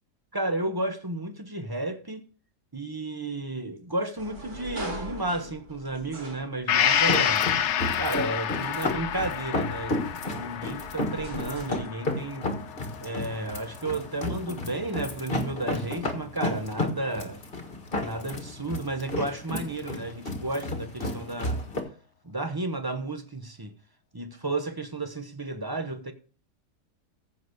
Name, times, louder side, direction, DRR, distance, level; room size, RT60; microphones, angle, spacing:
voice 1, 0.3-2.3 2.7-7.5 8.0-12.5 13.0-17.4 18.0-21.6 22.2-23.7 24.1-26.1, right 2 dB, 20° right, 0.6 m, -32 dB
sound 1, 4.2-7.1 7.7-11.9, right 1 dB, 70° right, 2.9 m, -42 dB
Gong, 6.7-14.3 14.7-14.8, left 9 dB, 60° left, 0.8 m, -29 dB
sound 2, 6.9-21.8, left 2 dB, 35° left, 1.7 m, -33 dB
15.0 x 4.9 x 6.3 m
omnidirectional pair, 1.7 m